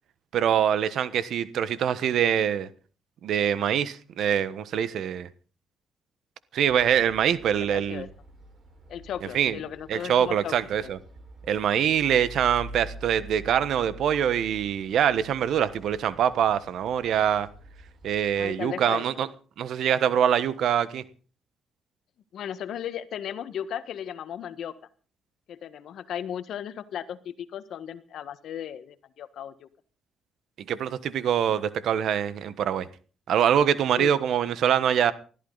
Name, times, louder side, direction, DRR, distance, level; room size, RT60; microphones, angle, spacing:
voice 1, 0.3-2.7 3.2-5.3 6.5-8.0 9.3-9.6 9.9-11.0 11.5-17.5 18.0-19.3 19.6-21.0 30.7-32.9 33.3-35.1, right 9 dB, 70° right, 15 dB, 1.3 m, -24 dB
sound 1, 6.7-18.5, right 1 dB, 45° right, 5.1 m, -46 dB
voice 2, 7.6-8.1 8.9-10.5 10.8-10.9 18.4-19.1 22.3-24.7 25.5-29.7 33.9-34.1, left 9 dB, 70° left, 12 dB, 1.5 m, -36 dB
20.5 x 14.0 x 4.1 m, 0.39 s
cardioid pair, 90°, 0 cm